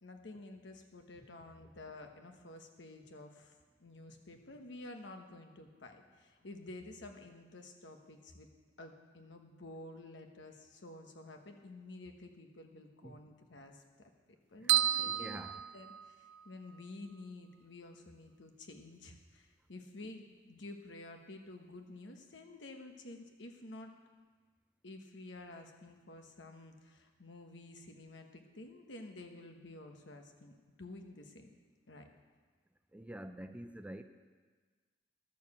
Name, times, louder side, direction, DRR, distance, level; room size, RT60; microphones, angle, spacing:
voice 1, 0.0-3.5 3.8-8.5 8.8-13.8 14.5-15.4 15.7-23.9 24.8-31.5 31.9-32.1, left 2 dB, 70° left, 5 dB, 1.1 m, -51 dB
voice 2, 14.6-15.6 32.9-34.0, right 1 dB, 5° right, 8 dB, 0.4 m, -47 dB
sound 1, 14.7-16.5, right 13 dB, 75° right, 0.4 m, -32 dB
12.0 x 6.8 x 7.2 m, 1.4 s
head